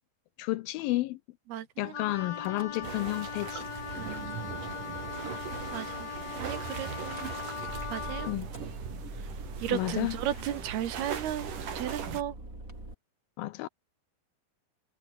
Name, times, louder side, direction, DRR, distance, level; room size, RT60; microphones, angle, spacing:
voice 1, 0.4-1.2 1.8-3.6 8.3-8.5 9.7-10.2 13.4-13.7, left 18 dB, 80° left, 2.3 m, -31 dB
voice 2, 1.5-2.0 4.0-4.5 5.3-6.1 6.4-7.2 7.9-8.3 9.6-12.4, right 11 dB, 80° right, 3.7 m, -35 dB
Wind instrument woodwind instrument, 1.9-8.4, left 7 dB, 45° left, 3.3 m, -39 dB
Car / Engine starting / Idling, 2.3-3.1 3.4-4.2 4.8-4.9 5.1-5.2 5.5-5.8 6.8-12.9, right 1 dB, 20° right, 7.9 m, -44 dB
sound 1, 2.8-12.2, right 7 dB, 60° right, 4.3 m, -40 dB
omnidirectional pair, 4.5 m